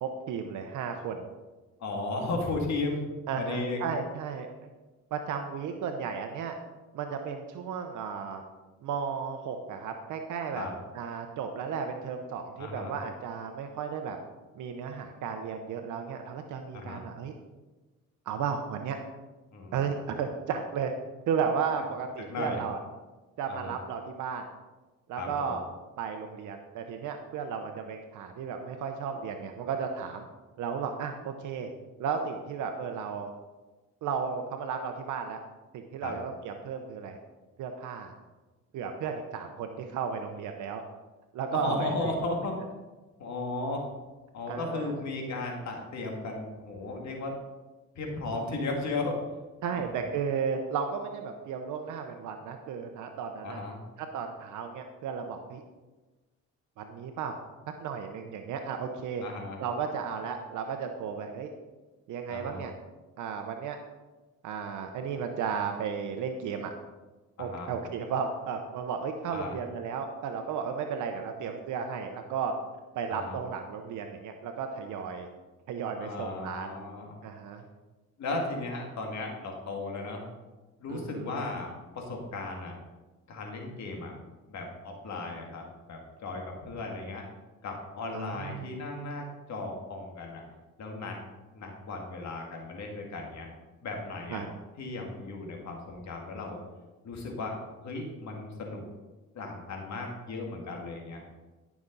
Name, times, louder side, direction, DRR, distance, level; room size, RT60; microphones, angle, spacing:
voice 1, 0.0-1.3 3.3-4.5 5.1-6.5 6.9-8.4 8.8-10.7 10.9-14.2 14.5-17.3 18.3-19.0 19.7-20.9 21.3-22.8 23.4-24.5 25.1-25.6 26.0-30.3 30.6-31.7 32.0-33.3 34.0-35.4 35.7-37.2 37.6-38.1 38.7-40.8 41.3-42.2 44.5-44.9 49.6-53.6 54.1-55.6 56.8-57.4 57.8-59.2 59.6-61.5 62.1-62.7 63.2-63.8 64.4-66.7 67.4-72.5 72.9-75.3 75.7-76.7 77.2-77.6 80.9-81.4 88.1-88.7 94.3-94.5, right 6 dB, 80° right, 5 dB, 0.9 m, -34 dB
voice 2, 1.8-3.0 3.4-3.8 10.5-10.7 12.6-12.9 16.7-17.1 19.5-19.8 22.3-22.6 23.5-23.7 25.2-25.6 36.0-36.1 41.5-42.6 43.2-43.9 44.3-47.3 48.0-49.2 49.7-50.1 53.4-53.8 59.2-59.6 62.3-62.6 67.4-67.7 69.3-69.6 73.1-73.4 76.0-77.2 78.2-80.2 80.8-81.7 81.9-82.8 83.3-84.1 84.5-87.2 87.6-90.4 90.8-91.2 91.5-93.5 93.8-94.4 94.8-96.6 97.0-98.8 99.3-101.2, left 2 dB, 65° left, 1 dB, 2.3 m, -35 dB
13.5 x 6.1 x 4.0 m, 1.2 s
cardioid pair, 90°, 30 cm